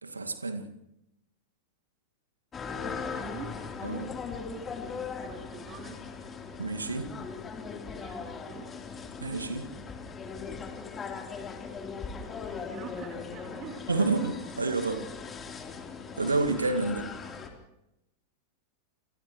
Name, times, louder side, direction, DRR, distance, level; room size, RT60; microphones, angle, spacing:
voice 1, 0.0-0.8 3.8-4.1 6.6-7.1 9.2-9.7 13.9-15.1 16.2-17.1, right 3 dB, 80° right, 6 dB, 2.1 m, -29 dB
sound 1, 2.5-17.5, left 5 dB, 20° left, 3.8 m, -39 dB
voice 2, 2.8-3.6 5.2-6.0 7.9-8.7 12.2-13.9, right 6 dB, 35° right, 2 dB, 3.5 m, -45 dB
29.5 x 29.0 x 3.2 m, 0.85 s
figure-of-eight pair, 90°, 0 cm